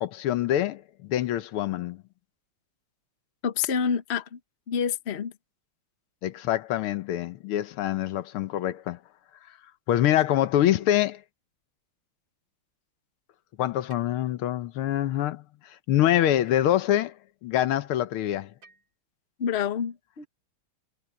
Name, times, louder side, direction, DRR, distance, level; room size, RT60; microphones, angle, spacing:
voice 1, 0.0-2.0 6.2-9.0 9.9-11.2 13.6-17.2 17.4-18.5, left 12 dB, 80° left, 1.7 m, -25 dB
voice 2, 3.4-4.4 4.7-5.3 19.4-20.3, left 7 dB, 40° left, 1.1 m, -28 dB
sound 1, 13.9-14.0 15.2-15.3 16.5-16.6 17.6-17.7 18.6-18.9, right 4 dB, 55° right, 4.0 m, -54 dB
omnidirectional pair, 2.4 m